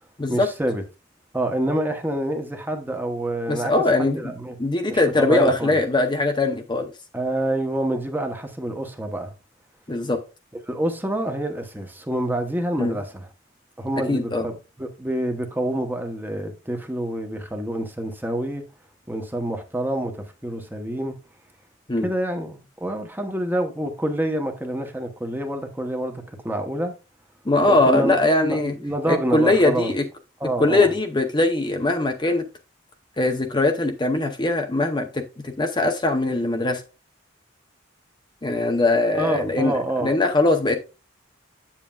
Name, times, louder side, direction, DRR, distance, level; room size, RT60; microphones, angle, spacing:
voice 1, 0.3-0.8 1.3-3.7 4.1-4.5 4.9-5.8 7.1-9.3 10.7-13.3 13.8-18.6 19.1-21.1 22.0-26.9 27.6-29.9 30.4-30.9 39.1-40.2, right 1 dB, 10° right, 0.9 m, -27 dB
voice 2, 3.5-4.2 4.6-6.9 9.9-10.2 12.8-13.0 14.1-14.5 21.9-22.1 27.5-28.7 29.1-30.0 30.6-32.4 33.2-36.8 38.4-40.8, left 2 dB, 25° left, 0.7 m, -21 dB
8.2 x 7.4 x 2.4 m
head